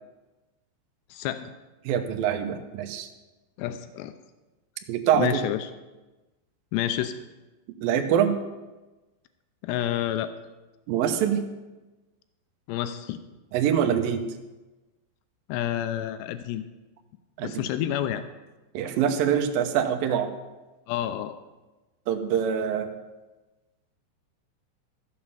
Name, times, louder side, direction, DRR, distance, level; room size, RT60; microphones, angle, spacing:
voice 1, 1.1-1.5 3.6-4.2 5.2-5.7 6.7-7.2 9.6-10.3 12.7-13.2 15.5-16.6 17.4-18.2 20.9-21.4, left 11 dB, 90° left, 10 dB, 2.4 m, -29 dB
voice 2, 1.8-3.1 4.9-5.4 7.8-8.3 10.9-11.4 13.5-14.2 17.4-17.5 18.7-20.3 22.1-22.9, right 9 dB, 80° right, 5 dB, 2.0 m, -24 dB
14.0 x 7.3 x 7.2 m, 1.1 s
omnidirectional pair, 5.6 m